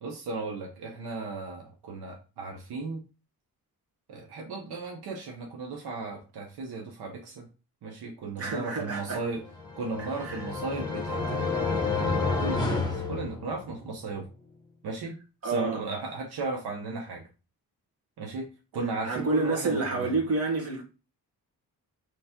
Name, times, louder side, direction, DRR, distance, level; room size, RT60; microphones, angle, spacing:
voice 1, 0.0-3.0 4.1-7.5 7.8-9.4 9.8-14.2 14.8-15.2 15.4-17.2 18.2-18.5 18.7-20.1, right 3 dB, 80° right, 1.0 m, -36 dB
voice 2, 8.4-9.2 10.0-10.4 15.4-15.8 19.0-20.8, right 3 dB, 40° right, 1.7 m, -29 dB
sound 1, 9.5-13.9, left 4 dB, 10° left, 1.0 m, -30 dB
3.3 x 3.2 x 4.3 m
cardioid pair, 90°, 38 cm